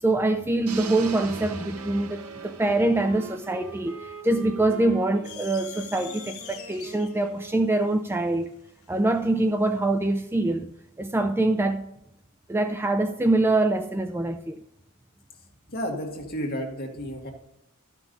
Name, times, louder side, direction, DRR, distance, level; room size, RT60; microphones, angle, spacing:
voice 1, 0.0-8.5 8.9-10.7 11.0-11.8 12.5-14.6, right 2 dB, 10° right, 8 dB, 0.3 m, -24 dB
sound 1, 0.7-4.7, right 6 dB, 85° right, 0.8 m, -41 dB
Wind instrument woodwind instrument, 0.9-7.9, right 4 dB, 60° right, 1.0 m, -44 dB
sound 2, 5.2-9.8, left 9 dB, 70° left, 0.9 m, -44 dB
voice 2, 15.7-17.3, equal, 45° left, 0 dB, 1.8 m, -32 dB
13.0 x 6.1 x 3.9 m, 0.84 s
head